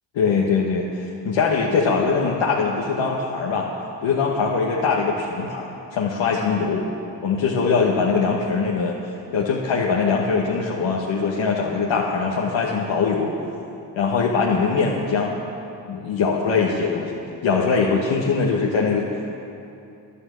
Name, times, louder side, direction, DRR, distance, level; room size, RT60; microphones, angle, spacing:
voice 1, 0.1-3.7 4.0-6.8 7.2-9.0 9.3-13.3 14.0-15.4 15.9-19.1, left 5 dB, 75° left, -3 dB, 1.3 m, -22 dB
11.0 x 10.0 x 7.4 m, 2.7 s
supercardioid pair, 45°, 47 cm